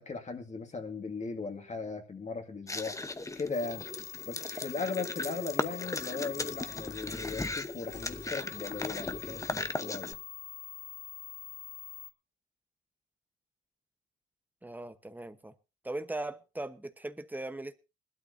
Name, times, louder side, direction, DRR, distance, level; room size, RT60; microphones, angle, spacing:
voice 1, 0.0-3.0 3.4-3.9 4.3-10.2, left 4 dB, 35° left, 2.1 m, -38 dB
sound 1, 2.7-10.1, left 2 dB, 15° left, 0.9 m, -37 dB
sound 2, 3.5-12.1, left 11 dB, 70° left, 2.1 m, -45 dB
voice 2, 14.6-15.5 15.8-17.8, right 2 dB, 10° right, 1.0 m, -39 dB
20.5 x 12.5 x 2.7 m
cardioid pair, 90°, 20 cm